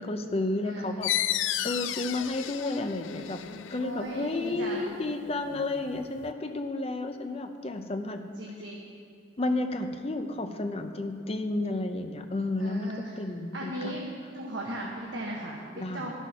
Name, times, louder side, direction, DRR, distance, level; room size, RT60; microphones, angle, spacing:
voice 1, 0.0-3.4 3.7-8.3 9.4-13.9 15.8-16.1, left 2 dB, 30° left, 7 dB, 0.6 m, -32 dB
voice 2, 0.6-1.0 3.8-4.9 8.4-8.9 12.6-13.2 13.5-14.0 14.3-15.6 15.9-16.1, right 1 dB, 75° right, -3 dB, 1.2 m, -37 dB
sound 1, 1.0-6.3, left 12 dB, 75° left, 0.4 m, -34 dB
13.0 x 6.3 x 5.5 m, 2.3 s
head